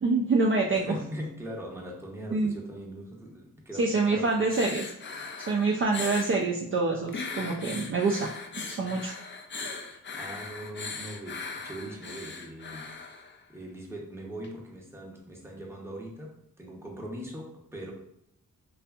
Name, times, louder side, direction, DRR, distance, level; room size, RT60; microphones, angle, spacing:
voice 1, 0.0-1.0 2.3-2.5 3.8-4.9 5.5-8.3 8.7-9.1, right 3 dB, 35° right, -1 dB, 0.4 m, -26 dB
voice 2, 0.7-4.6 9.8-13.0 13.5-17.9, equal, 5° right, -1 dB, 0.7 m, -41 dB
sound 1, 4.2-6.4 7.1-13.4 14.4-14.5, left 4 dB, 35° left, 0.4 m, -39 dB
2.6 x 2.4 x 2.3 m, 0.79 s
cardioid pair, 50°, 35 cm